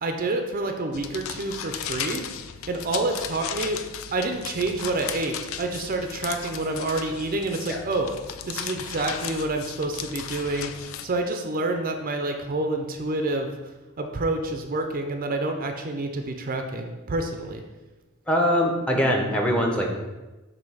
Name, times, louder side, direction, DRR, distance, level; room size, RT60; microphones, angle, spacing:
voice 1, 0.0-2.3 2.7-3.8 4.1-8.2 8.4-13.6 14.0-17.6, right 2 dB, 45° right, 5 dB, 0.5 m, -28 dB
sound 1, 0.9-11.1, left 8 dB, 75° left, 0.4 m, -36 dB
voice 2, 18.3-20.0, equal, 5° left, 1 dB, 0.8 m, -22 dB
7.5 x 2.8 x 5.5 m, 1.2 s
head